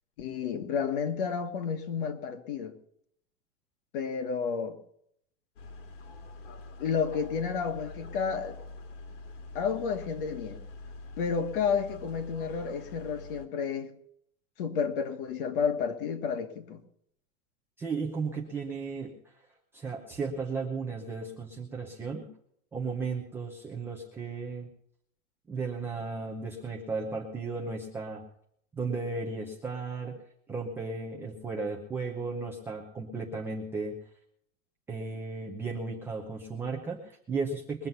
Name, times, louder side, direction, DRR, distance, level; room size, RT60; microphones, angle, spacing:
voice 1, 0.2-2.7 3.9-4.8 6.8-8.6 9.5-10.6 11.2-13.9 14.6-16.8, left 6 dB, 40° left, 1.6 m, -31 dB
sound 1, 5.6-13.5, left 2 dB, 60° left, 2.4 m, -45 dB
voice 2, 17.8-19.3 19.7-22.3 22.7-24.7 25.5-28.2 28.7-30.2 30.5-34.0 34.9-37.9, right 4 dB, 5° right, 0.7 m, -35 dB
21.5 x 7.6 x 5.5 m
supercardioid pair, 180°, 41 cm